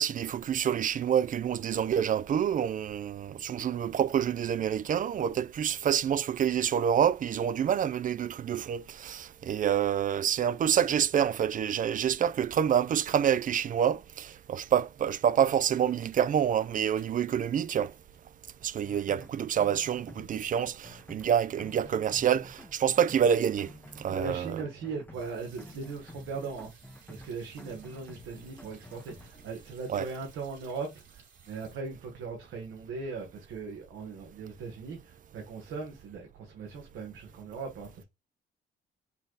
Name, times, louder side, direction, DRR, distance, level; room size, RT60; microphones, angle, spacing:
voice 1, 0.0-17.9 18.6-23.7 24.0-24.6 29.9-30.1, right 9 dB, 45° right, 0.4 m, -27 dB
sound 1, 14.2-14.3 14.6-17.3 17.6-24.0 25.1-31.7, right 5 dB, 65° right, 3.0 m, -61 dB
sound 2, 18.8-29.5, left 1 dB, 10° left, 0.6 m, -50 dB
voice 2, 24.1-26.7 27.1-38.0, right 4 dB, 85° right, 1.4 m, -39 dB
5.8 x 2.3 x 3.9 m
cardioid pair, 90°, 20 cm